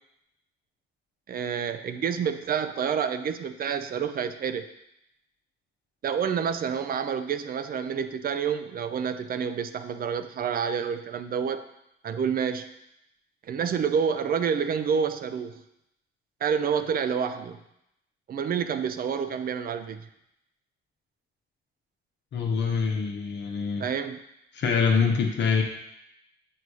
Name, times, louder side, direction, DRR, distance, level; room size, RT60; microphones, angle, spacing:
voice 1, 1.3-4.7 6.0-11.6 12.0-12.7 13.5-15.5 16.4-17.6 18.3-20.1 23.8-24.2, right 7 dB, 50° right, 9 dB, 0.5 m, -28 dB
voice 2, 22.3-23.8 24.5-25.6, left 5 dB, 65° left, 1 dB, 0.9 m, -25 dB
7.7 x 2.7 x 4.7 m, 0.82 s
cardioid pair, 90°, 20 cm